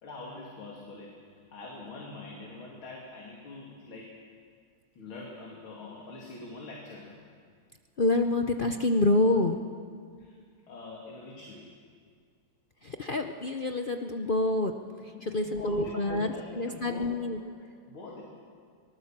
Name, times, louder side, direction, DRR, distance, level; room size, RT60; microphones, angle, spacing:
voice 1, 0.0-4.2 4.9-7.2 10.2-10.4 10.7-11.7 15.1-17.1 17.3-18.2, left 3 dB, 80° left, -2 dB, 3.5 m, -44 dB
voice 2, 8.0-9.6 12.8-14.7 15.2-16.3 16.5-17.4, left 2 dB, 55° left, 5 dB, 0.5 m, -27 dB
24.5 x 18.5 x 7.5 m, 2.1 s
omnidirectional pair, 2.2 m